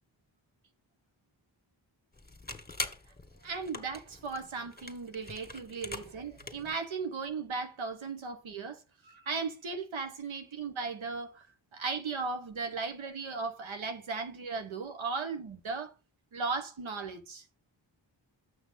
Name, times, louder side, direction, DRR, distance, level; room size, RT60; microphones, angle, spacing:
sound 1, 2.1-6.8, left 3 dB, 20° left, 1.8 m, -43 dB
voice 1, 3.4-11.5 11.7-15.9 16.3-17.5, right 4 dB, 85° right, 1.2 m, -37 dB
6.9 x 6.2 x 4.0 m
cardioid pair, 50°, 46 cm